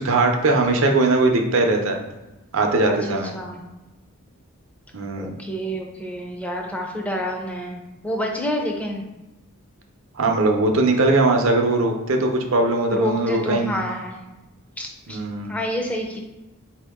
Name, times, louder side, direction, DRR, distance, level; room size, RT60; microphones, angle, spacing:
voice 1, 0.0-2.0 2.5-3.3 4.9-5.3 10.1-13.7 15.1-15.5, right 2 dB, 65° right, 3 dB, 0.7 m, -20 dB
voice 2, 2.9-3.6 5.2-9.0 12.9-14.2 14.8-15.2 15.5-16.2, equal, 5° left, 1 dB, 0.5 m, -28 dB
4.5 x 2.8 x 3.5 m, 1.0 s
head